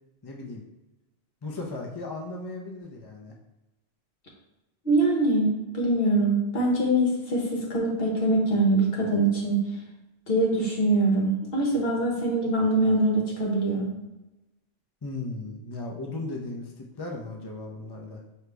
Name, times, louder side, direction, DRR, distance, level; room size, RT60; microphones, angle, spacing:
voice 1, 0.2-0.6 1.4-3.3 15.0-18.2, left 2 dB, 35° left, -1 dB, 0.4 m, -36 dB
voice 2, 4.8-9.6 10.3-13.9, right 2 dB, 55° left, -2 dB, 1.2 m, -23 dB
4.9 x 2.8 x 3.4 m, 1.0 s
omnidirectional pair, 1.2 m